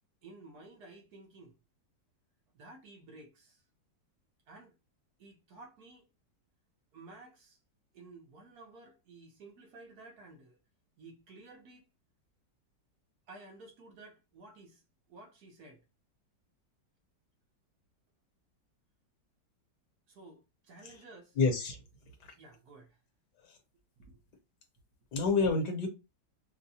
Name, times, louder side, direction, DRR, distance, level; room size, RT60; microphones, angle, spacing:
voice 1, 0.2-1.6 2.5-3.6 4.5-4.7 5.2-6.1 6.9-7.6 7.9-10.6 11.0-11.9 13.3-14.8 15.1-15.8 20.1-21.4 22.4-23.0 24.0-24.2, right 2 dB, 60° right, 1.3 m, -53 dB
voice 2, 21.4-21.8 22.2-22.3 23.4-23.6 25.1-25.9, left 4 dB, 70° left, 1.5 m, -29 dB
5.4 x 2.3 x 2.7 m
omnidirectional pair, 1.9 m